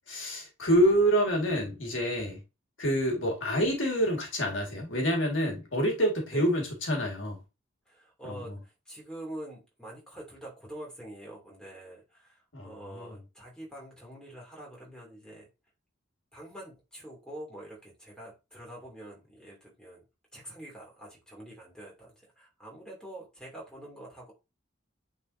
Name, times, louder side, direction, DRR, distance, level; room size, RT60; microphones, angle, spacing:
voice 1, 0.1-2.4 2.8-7.4 8.2-8.6 12.5-13.2, equal, 65° left, 1.9 m, -27 dB
voice 2, 7.9-15.5 16.3-20.0 20.3-24.3, right 1 dB, 5° left, 2.6 m, -45 dB
9.0 x 4.0 x 2.7 m
head